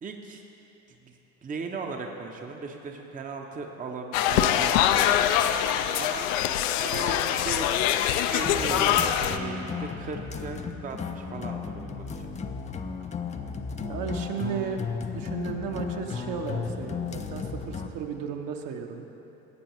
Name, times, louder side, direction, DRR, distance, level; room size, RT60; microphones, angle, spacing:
voice 1, 0.0-0.4 1.0-6.3 6.8-7.7 8.3-12.3, right 4 dB, 20° right, 3 dB, 0.7 m, -37 dB
sound 1, 4.1-9.4, left 11 dB, 65° left, 0.6 m, -24 dB
sound 2, 8.4-17.9, left 5 dB, 15° left, 0.4 m, -35 dB
voice 2, 13.8-14.8 15.1-19.0, right 6 dB, 50° right, 3 dB, 0.9 m, -34 dB
15.0 x 8.4 x 3.1 m, 3.0 s
hypercardioid pair, 70°, 43 cm